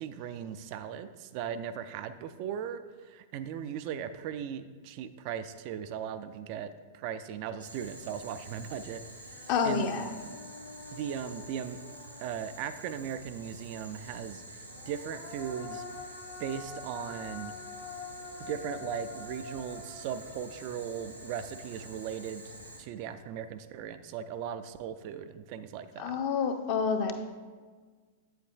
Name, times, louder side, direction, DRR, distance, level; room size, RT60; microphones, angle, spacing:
voice 1, 0.0-10.1 10.9-11.8 12.2-14.4 14.9-15.8 16.4-17.5 18.4-22.5 22.8-26.2, right 8 dB, 45° right, 10 dB, 0.3 m, -38 dB
Boiling, 7.6-22.8, right 1 dB, 90° right, 1.5 m, -48 dB
Human voice, 8.8-8.9 9.2-12.9 14.6-21.8, left 4 dB, 60° left, 1.4 m, -47 dB
voice 2, 9.5-10.1 26.0-27.1, left 6 dB, 40° left, 6 dB, 0.7 m, -28 dB
8.3 x 7.8 x 2.3 m, 1.5 s
figure-of-eight pair, 100°, 0 cm